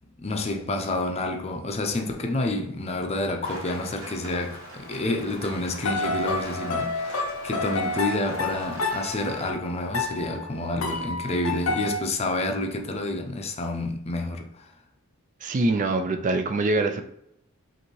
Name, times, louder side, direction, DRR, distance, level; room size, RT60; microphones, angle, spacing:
voice 1, 0.2-14.7, left 2 dB, 30° left, 0.5 m, -29 dB
Rain, 3.4-9.5, right 1 dB, 85° right, 1.2 m, -41 dB
sound 1, 5.8-12.0, left 2 dB, 75° left, 0.6 m, -30 dB
voice 2, 15.4-17.0, right 2 dB, 40° right, 0.3 m, -24 dB
5.4 x 2.6 x 3.0 m
head